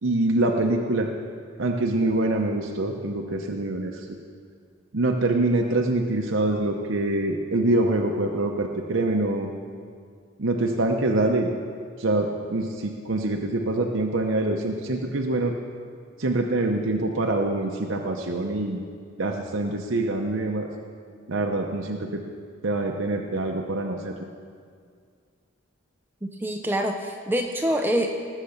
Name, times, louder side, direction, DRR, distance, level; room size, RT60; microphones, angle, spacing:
voice 1, 0.0-1.1 1.6-4.1 4.9-9.5 10.4-11.5 12.0-15.6 16.2-18.8 19.2-20.7 21.3-22.2 22.6-24.3, right 2 dB, 70° right, 2 dB, 0.9 m, -25 dB
voice 2, 26.4-28.1, equal, 10° right, 4 dB, 0.6 m, -25 dB
19.0 x 7.4 x 6.7 m, 2.1 s
head